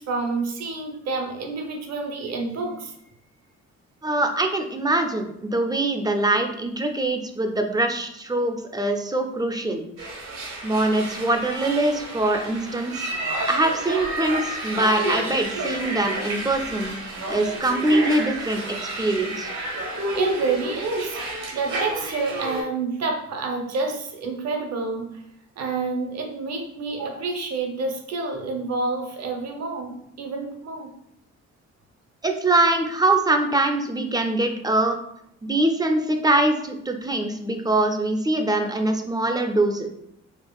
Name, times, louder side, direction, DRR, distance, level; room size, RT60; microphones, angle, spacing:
voice 1, 0.0-2.9 20.1-21.2 21.5-25.2 25.6-30.9, right 3 dB, 60° right, 2 dB, 0.8 m, -28 dB
voice 2, 4.0-9.8 10.6-13.1 13.5-16.9 17.3-18.6 19.0-19.5 32.2-35.0 35.4-39.9, right 2 dB, 15° right, 5 dB, 0.4 m, -23 dB
sound 1, 10.0-22.6, right 1 dB, 75° right, 1.3 m, -31 dB
4.3 x 2.4 x 2.3 m, 0.75 s
cardioid pair, 90°, 30 cm